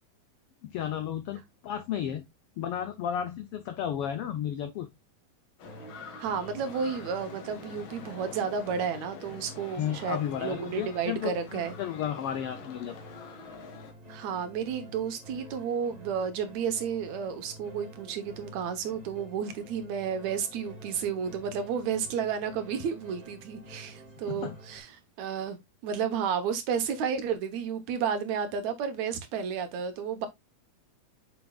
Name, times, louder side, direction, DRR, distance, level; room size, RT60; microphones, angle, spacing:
voice 1, 0.6-2.2 2.6-4.9 9.8-12.9 24.3-24.6, left 9 dB, 85° left, 1.3 m, -33 dB
sound 1, 5.6-13.9, left 5 dB, 60° left, 1.5 m, -46 dB
sound 2, 5.6-24.8, equal, 35° right, 0.6 m, -49 dB
voice 2, 6.2-11.7 14.1-24.9 25.2-25.6 25.8-30.3, right 7 dB, 70° right, 2.3 m, -32 dB
7.1 x 6.1 x 2.3 m
omnidirectional pair, 3.4 m